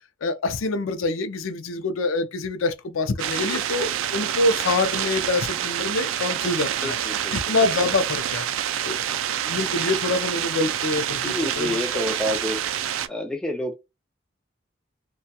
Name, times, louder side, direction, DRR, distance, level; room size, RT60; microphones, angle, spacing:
voice 1, 0.2-7.0 7.3-8.5 8.8-9.0 9.4-12.0, left 3 dB, 85° left, 0.5 m, -26 dB
sound 1, 3.2-13.1, right 10 dB, 85° right, 0.3 m, -27 dB
voice 2, 6.8-7.6 11.2-12.6 13.1-13.8, left 1 dB, 5° left, 0.4 m, -29 dB
2.7 x 2.2 x 2.2 m
head